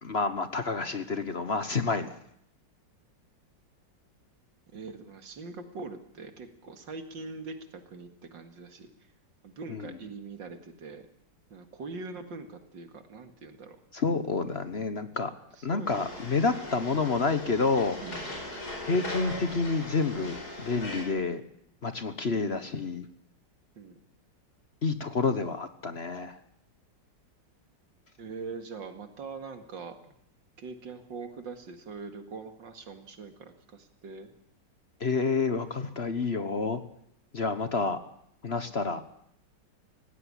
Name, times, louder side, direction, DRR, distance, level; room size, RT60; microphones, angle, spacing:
voice 1, 0.0-2.1 9.7-10.0 13.9-15.3 15.6-18.0 18.8-21.4 21.8-23.1 24.8-26.4 35.0-36.8 37.3-38.0 38.4-39.0, left 4 dB, 40° left, 11 dB, 1.2 m, -29 dB
voice 2, 4.7-8.9 9.4-11.1 11.5-13.8 15.7-16.2 18.0-18.4 22.4-22.7 23.8-24.0 28.2-30.1 30.6-34.3, right 4 dB, 85° right, 8 dB, 2.7 m, -42 dB
sound 1, 15.9-21.0, left 1 dB, 55° left, 5.4 m, -39 dB
18.0 x 16.5 x 9.9 m, 0.72 s
omnidirectional pair, 2.0 m